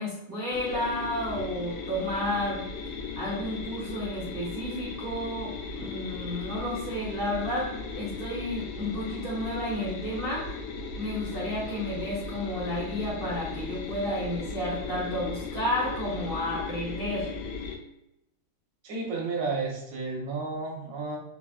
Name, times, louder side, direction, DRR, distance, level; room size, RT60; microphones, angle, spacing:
voice 1, 0.0-2.6 3.2-10.5 11.0-17.3, left 1 dB, 80° right, -9 dB, 0.5 m, -32 dB
sound 1, 0.5-17.8, left 4 dB, 85° left, 1.5 m, -37 dB
voice 2, 18.8-21.2, right 3 dB, 60° right, -2 dB, 0.9 m, -32 dB
4.0 x 2.4 x 2.4 m, 0.87 s
omnidirectional pair, 2.4 m